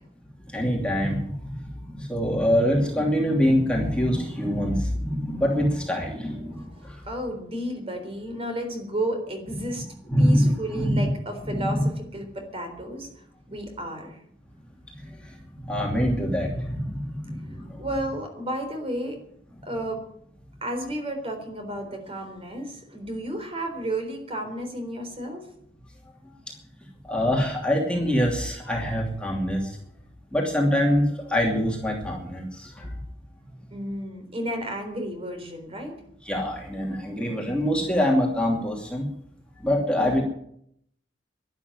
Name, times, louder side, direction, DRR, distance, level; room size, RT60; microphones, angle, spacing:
voice 1, 0.5-7.0 10.1-11.0 11.5-11.8 15.0-15.4 15.6-17.8 27.1-29.7 30.3-32.9 36.2-39.0 39.6-40.2, equal, 5° left, -1 dB, 2.7 m, -25 dB
voice 2, 6.4-9.9 10.2-13.1 13.5-14.2 17.8-19.2 19.6-20.0 20.6-25.5 33.7-36.0 40.0-40.2, right 1 dB, 30° right, 5 dB, 3.9 m, -32 dB
12.0 x 11.5 x 9.6 m, 0.70 s
head